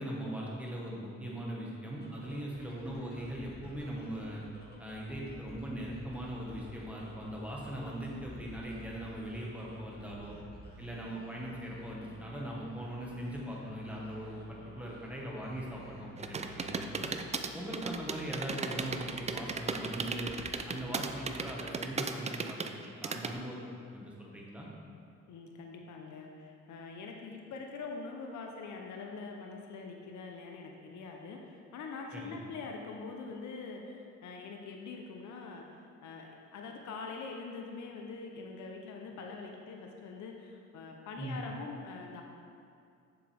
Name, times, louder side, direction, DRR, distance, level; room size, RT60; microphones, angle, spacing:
voice 1, 0.0-4.4 4.8-10.4 10.8-17.1 17.5-20.3 20.7-24.7 32.1-32.4 41.2-41.4, equal, 5° right, -4 dB, 1.6 m, -40 dB
sound 1, 2.0-21.7, equal, 35° left, 1.9 m, -53 dB
voice 2, 10.0-10.4 20.7-21.0 25.3-42.2, left 4 dB, 70° left, 2 dB, 0.8 m, -44 dB
sound 2, 16.2-23.3, right 5 dB, 25° right, 0.4 m, -36 dB
7.2 x 6.9 x 3.5 m, 2.4 s
cardioid pair, 90°, 30 cm